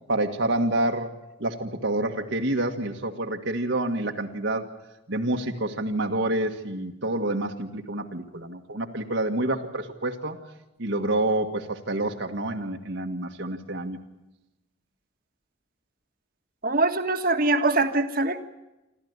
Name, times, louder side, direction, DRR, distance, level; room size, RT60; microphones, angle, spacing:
voice 1, 0.1-4.7 5.1-10.4 10.8-14.0, right 1 dB, 65° right, 2 dB, 1.7 m, -28 dB
voice 2, 16.6-18.4, right 2 dB, 45° right, 7 dB, 1.6 m, -23 dB
27.5 x 13.5 x 9.5 m, 0.98 s
head